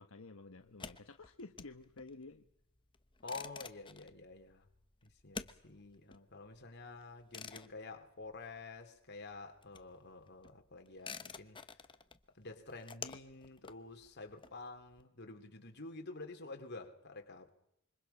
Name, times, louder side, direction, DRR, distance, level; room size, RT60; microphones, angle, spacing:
voice 1, 0.0-2.5, left 3 dB, 90° left, 1.3 m, -52 dB
sound 1, 0.6-9.0 9.2-15.0, left 5 dB, 25° left, 1.0 m, -51 dB
voice 2, 3.2-4.7 5.0-11.6 12.3-17.5, left 3 dB, 55° left, 3.1 m, -49 dB
27.0 x 25.0 x 5.8 m
head